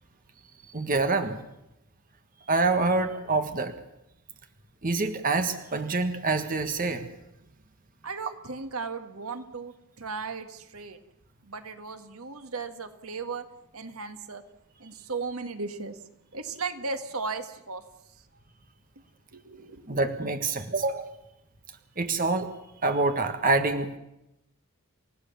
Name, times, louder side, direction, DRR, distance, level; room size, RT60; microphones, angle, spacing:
voice 1, 0.7-1.4 2.5-3.7 4.8-7.0 19.9-21.1 22.0-22.5 22.8-24.0, right 3 dB, 40° right, 7 dB, 1.6 m, -26 dB
voice 2, 8.0-11.0 11.4-13.5 13.7-14.4 14.8-16.0 16.3-17.8 19.3-19.9, right 4 dB, 75° right, 8 dB, 1.8 m, -36 dB
29.0 x 16.5 x 7.1 m, 0.87 s
head